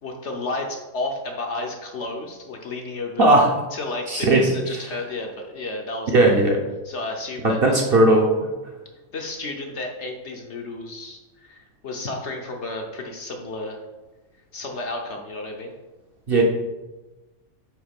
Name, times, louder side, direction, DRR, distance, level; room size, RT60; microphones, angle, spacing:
voice 1, 0.0-3.3 3.7-6.4 6.8-7.8 9.1-13.8 14.5-15.7, left 2 dB, 55° left, 2 dB, 1.0 m, -32 dB
voice 2, 4.1-4.5 6.1-6.6 7.4-8.5 16.3-16.4, right 2 dB, 45° right, 0 dB, 1.0 m, -17 dB
8.0 x 3.2 x 5.2 m, 1.1 s
omnidirectional pair, 1.6 m